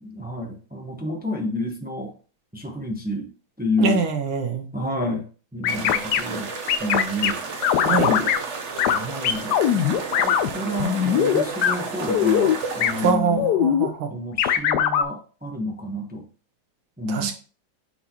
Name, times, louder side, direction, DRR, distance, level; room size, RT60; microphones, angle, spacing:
voice 1, 0.0-2.2 2.5-3.3 3.6-4.1 4.7-6.5 6.8-8.3 8.9-13.5 14.1-16.2 17.0-17.3, left 1 dB, 10° right, 0.5 m, -30 dB
voice 2, 3.8-4.7 7.8-8.1 13.0-14.1 17.1-17.3, right 5 dB, 90° right, 1.7 m, -23 dB
sound 1, 5.6-6.2 6.7-7.3 7.6-8.4 8.8-9.0 9.2-10.5 10.8-11.7 12.1-12.5 12.8-12.9 13.4-13.9 14.4-15.0, left 9 dB, 70° left, 1.1 m, -20 dB
sound 2, 5.7-13.1, right 4 dB, 45° right, 1.0 m, -32 dB
8.5 x 4.2 x 2.9 m
omnidirectional pair, 2.1 m